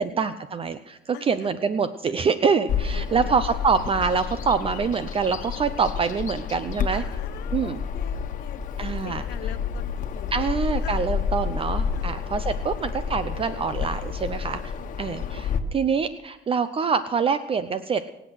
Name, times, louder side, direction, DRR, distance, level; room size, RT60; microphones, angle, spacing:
voice 1, 0.0-7.0 7.5-7.8 8.8-9.2 10.3-14.7 15.0-18.0, right 5 dB, 35° right, 12 dB, 0.6 m, -25 dB
voice 2, 1.1-1.5 2.1-2.2 2.5-3.4 6.9-10.4 10.8-11.0 11.9-12.2 12.5-12.6 14.8-15.1, left 13 dB, 85° left, 11 dB, 1.0 m, -44 dB
Bird vocalization bird call bird song, 2.7-15.6, left 7 dB, 50° left, 1.4 m, -30 dB
24.0 x 8.0 x 6.3 m, 0.95 s
cardioid pair, 110°, 17 cm